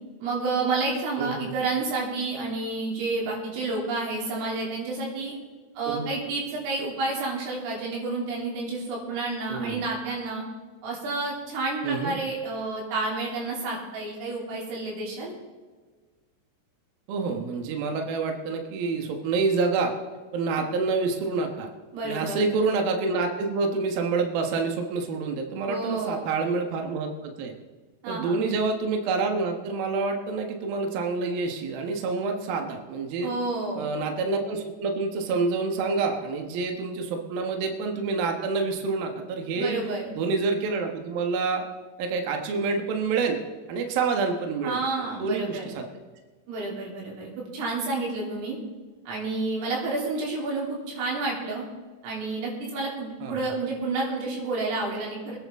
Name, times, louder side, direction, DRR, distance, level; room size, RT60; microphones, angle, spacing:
voice 1, 0.2-5.4 5.8-10.4 10.8-15.3 21.9-22.6 25.7-26.3 28.0-28.4 33.2-33.9 39.6-40.1 44.6-45.7 46.5-48.6 49.1-51.6 52.0-55.4, right 3 dB, 90° right, -3 dB, 6.1 m, -30 dB
voice 2, 1.2-1.5 5.9-6.1 9.5-9.8 11.8-12.2 17.1-19.9 20.3-21.7 22.0-27.5 28.1-33.3 33.7-39.8 40.2-41.6 42.0-43.4 43.7-44.8 45.2-45.9 53.2-53.4, right 4 dB, 65° right, 3 dB, 2.6 m, -27 dB
25.0 x 10.0 x 3.7 m, 1.4 s
omnidirectional pair, 5.7 m